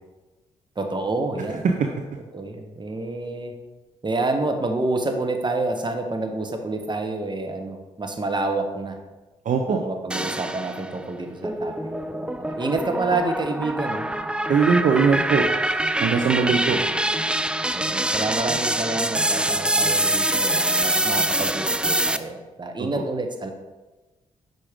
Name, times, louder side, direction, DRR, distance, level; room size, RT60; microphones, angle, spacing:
voice 1, 0.8-1.7 2.3-3.5 4.0-9.0 9.7-14.1 17.7-23.5, right 2 dB, 30° right, 5 dB, 1.1 m, -28 dB
voice 2, 1.5-1.9 9.5-9.8 14.5-15.5 16.0-16.8 22.9-23.0, right 5 dB, 55° right, 4 dB, 0.6 m, -20 dB
sound 1, 10.1-11.0 11.4-22.2, right 1 dB, 5° right, 0.4 m, -24 dB
6.0 x 5.1 x 3.5 m, 1.2 s
hypercardioid pair, 40°, 15 cm